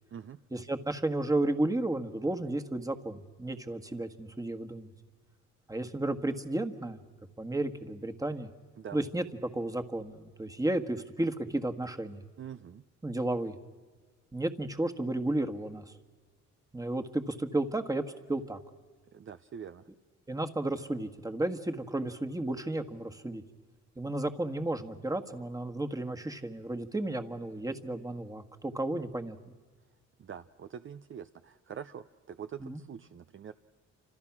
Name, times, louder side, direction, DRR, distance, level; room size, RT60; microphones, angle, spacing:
voice 1, 0.5-4.9 5.7-7.0 7.4-8.5 8.9-9.2 9.5-12.2 13.0-13.6 14.3-15.9 16.7-18.0 18.3-18.6 20.3-23.4 24.0-29.4 32.6-32.8, right 2 dB, 10° right, 6 dB, 1.6 m, -33 dB
voice 2, 12.4-12.8 19.1-19.9 30.2-33.5, right 8 dB, 40° right, 10 dB, 0.7 m, -44 dB
28.5 x 26.5 x 6.1 m, 1.4 s
cardioid pair, 90°, 30 cm